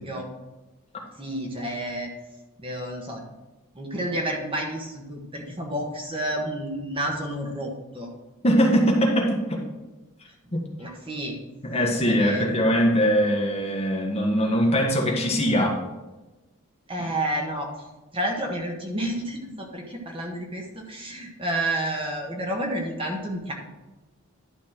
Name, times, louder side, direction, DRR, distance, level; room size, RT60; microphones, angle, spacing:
voice 1, 1.2-2.1 2.6-3.2 3.7-8.1 10.8-11.4 12.0-12.5 16.9-17.7 18.1-23.5, right 1 dB, 25° right, 1 dB, 1.4 m, -30 dB
voice 2, 8.4-9.6 10.5-10.7 11.6-15.8, equal, 30° left, 0 dB, 1.5 m, -22 dB
11.5 x 4.2 x 6.0 m, 1.1 s
head